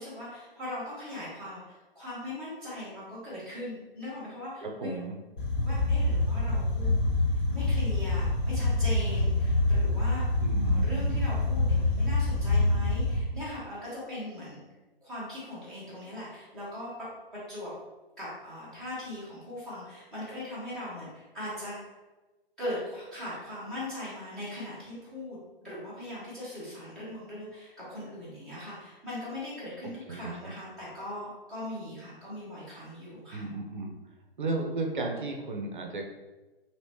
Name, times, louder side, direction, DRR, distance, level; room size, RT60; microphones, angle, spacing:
voice 1, 0.0-5.0 5.6-6.9 7.5-10.3 10.6-14.6 15.0-16.9 17.3-17.7 18.2-21.8 22.6-33.5, left 1 dB, ahead, -13 dB, 0.5 m, -40 dB
voice 2, 4.6-5.2 10.4-11.1 30.1-30.5 33.3-33.9 34.4-36.0, right 2 dB, 55° right, 2 dB, 0.6 m, -34 dB
sound 1, 5.4-13.2, left 2 dB, 60° left, 1.0 m, -26 dB
3.0 x 2.9 x 2.8 m, 1.2 s
figure-of-eight pair, 130°, 30 cm